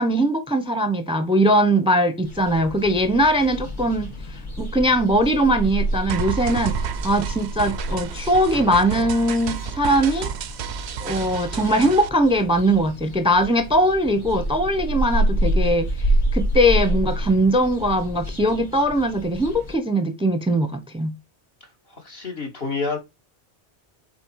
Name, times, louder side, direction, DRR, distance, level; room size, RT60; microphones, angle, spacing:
voice 1, 0.0-4.1 4.6-10.3 11.0-15.9 16.3-21.1, equal, 5° right, 0.8 m, -20 dB
sound 1, 2.2-19.7, right 1 dB, 80° left, 4.1 m, -28 dB
sound 2, 6.1-12.1, right 8 dB, 70° right, 0.9 m, -31 dB
voice 2, 21.9-23.0, left 4 dB, 55° left, 2.4 m, -28 dB
7.8 x 4.3 x 4.8 m
omnidirectional pair, 1.2 m